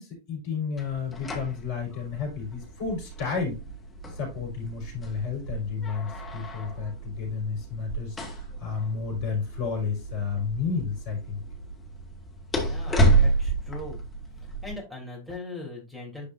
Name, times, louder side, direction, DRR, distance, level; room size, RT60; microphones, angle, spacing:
voice 1, 0.0-3.6 4.1-11.4, left 5 dB, 50° left, 0 dB, 4.4 m, -32 dB
sound 1, 0.8-14.7, right 2 dB, 15° left, 2.1 m, -30 dB
voice 2, 12.5-14.0 14.6-16.3, left 2 dB, 5° right, -2 dB, 3.4 m, -40 dB
11.0 x 4.9 x 2.7 m, 0.28 s
figure-of-eight pair, 90°, 0 cm